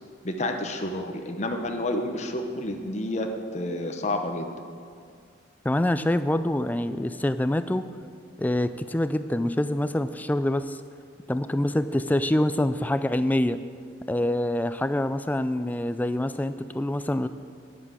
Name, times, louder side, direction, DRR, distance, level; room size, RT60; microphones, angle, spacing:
voice 1, 0.2-4.5, left 1 dB, 35° left, 4 dB, 0.8 m, -30 dB
voice 2, 5.6-7.9 8.4-10.8 11.3-13.6 14.1-17.3, left 1 dB, 10° left, 11 dB, 0.3 m, -25 dB
9.8 x 8.3 x 7.4 m, 2.2 s
head